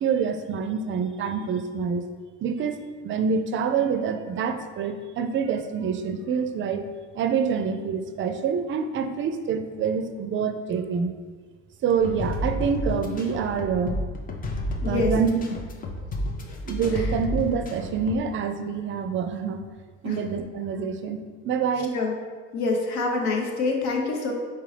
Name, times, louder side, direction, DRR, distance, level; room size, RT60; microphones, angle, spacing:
voice 1, 0.0-2.0 2.4-6.8 7.1-11.1 11.8-14.0 14.9-15.6 16.6-19.6 20.0-21.9, right 6 dB, 40° right, 8 dB, 0.4 m, -26 dB
sound 1, 12.0-18.2, left 1 dB, 30° left, 0.5 m, -31 dB
voice 2, 14.8-15.1 16.5-16.6 17.0-17.1 20.0-20.2 21.9-22.1 22.5-24.3, left 3 dB, 75° left, 0 dB, 1.0 m, -26 dB
4.4 x 3.7 x 3.3 m, 1.6 s
cardioid pair, 110°, 30 cm